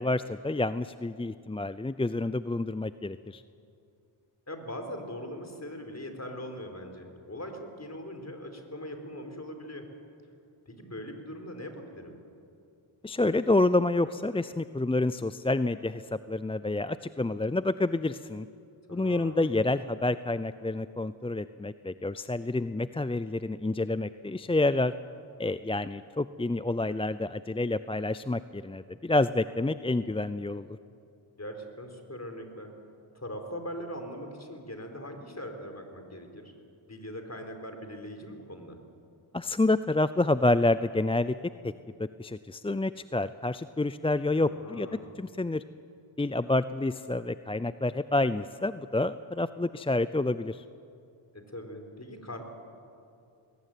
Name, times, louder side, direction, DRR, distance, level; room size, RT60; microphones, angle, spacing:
voice 1, 0.0-3.4 13.0-18.5 18.9-24.9 25.4-30.7 39.3-41.4 41.6-41.7 42.0-44.9 45.2-45.6 46.2-50.6, left 2 dB, 10° left, 14 dB, 0.5 m, -28 dB
voice 2, 4.5-9.9 10.7-12.2 18.9-19.4 31.4-32.7 33.1-36.5 36.9-38.8 44.4-45.1 51.3-52.4, equal, 30° left, 5 dB, 4.4 m, -41 dB
21.0 x 18.5 x 9.2 m, 2.5 s
cardioid pair, 40°, 50 cm